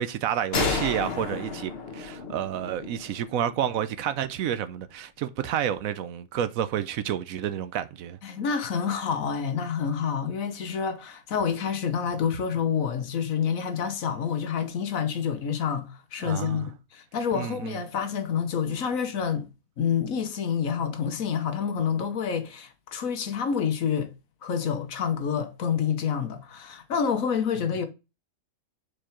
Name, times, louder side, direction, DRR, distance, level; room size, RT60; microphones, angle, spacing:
voice 1, 0.0-8.2 16.2-16.6 17.3-17.8, right 10 dB, 75° right, 1.0 m, -30 dB
sound 1, 0.5-4.1, left 4 dB, 45° left, 1.4 m, -32 dB
voice 2, 8.2-19.5 19.8-24.1 24.4-27.9, left 7 dB, 65° left, 1.3 m, -28 dB
4.9 x 4.6 x 5.7 m
omnidirectional pair, 1.6 m